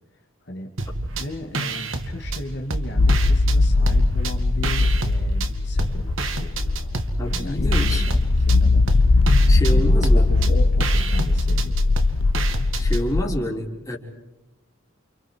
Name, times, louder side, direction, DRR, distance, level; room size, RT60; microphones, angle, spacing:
sound 1, 0.8-1.3 1.5-3.6 3.9-5.5 5.8-13.0, right 3 dB, 75° right, 2.5 m, -29 dB
voice 1, 1.2-7.0 7.3-7.7 8.1-8.8 9.1-9.2 9.7-11.7, left 1 dB, 55° left, 2 dB, 2.7 m, -36 dB
sound 2, 3.0-13.2, left 2 dB, 75° left, 0.8 m, -19 dB
voice 2, 7.2-8.0 9.5-10.5 12.8-14.0, equal, 15° left, 0 dB, 4.0 m, -27 dB
29.5 x 29.5 x 4.8 m, 1.0 s
head